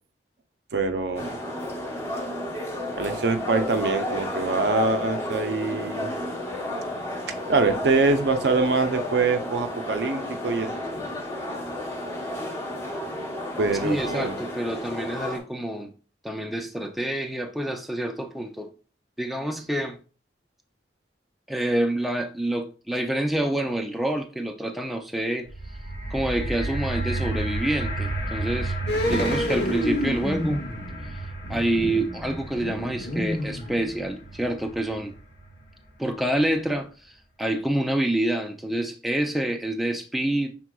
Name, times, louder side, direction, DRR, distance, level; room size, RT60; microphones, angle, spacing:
voice 1, 0.7-1.4 3.0-6.1 7.5-10.7 13.6-14.4, right 3 dB, 70° right, 0.5 m, -24 dB
sound 1, 1.1-15.4, left 1 dB, 15° left, 0.9 m, -32 dB
voice 2, 13.8-15.9 16.2-18.7 19.2-20.0 21.5-25.5 26.1-28.7 29.1-30.6 31.5-35.1 36.0-37.1 37.4-40.5, right 1 dB, ahead, 0.4 m, -27 dB
sound 2, 25.5-35.7 36.4-36.5, right 2 dB, 90° left, 2.2 m, -33 dB
sound 3, 28.9-34.3 34.6-34.7, equal, 60° left, 1.0 m, -29 dB
6.1 x 3.6 x 2.2 m
head